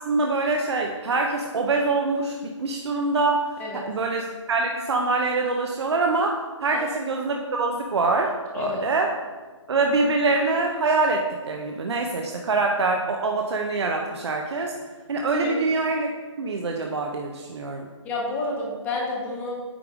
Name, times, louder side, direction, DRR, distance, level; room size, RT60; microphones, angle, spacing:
voice 1, 0.1-9.1 9.7-14.7 15.1-16.1 16.4-17.9, right 3 dB, 55° right, 2 dB, 0.6 m, -24 dB
voice 2, 18.0-19.5, left 3 dB, 10° left, -2 dB, 0.8 m, -29 dB
8.6 x 3.4 x 4.9 m, 1.4 s
figure-of-eight pair, 155°, 16 cm